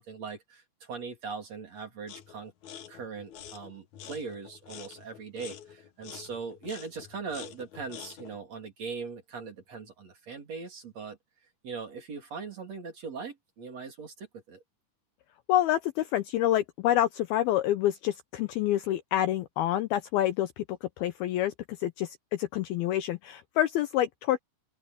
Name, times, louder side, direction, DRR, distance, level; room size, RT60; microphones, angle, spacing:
voice 1, 0.0-2.5 2.9-11.2 11.6-14.6, right 5 dB, 40° right, 4.1 m, -40 dB
sound 1, 2.1-2.4 2.6-8.4, left 9 dB, 60° left, 2.1 m, -47 dB
voice 2, 15.5-21.5 21.8-24.4, left 13 dB, 75° left, 2.3 m, -27 dB
open air
omnidirectional pair, 5.0 m